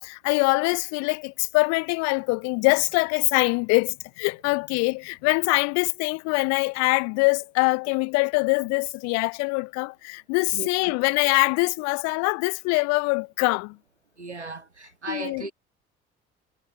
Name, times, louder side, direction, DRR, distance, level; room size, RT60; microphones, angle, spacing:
voice 1, 0.0-13.8 15.1-15.4, left 30 dB, 55° left, 0.5 m, -24 dB
voice 2, 10.5-11.0 14.2-15.5, right 3 dB, 90° right, 1.9 m, -36 dB
figure-of-eight pair, 55°, 33 cm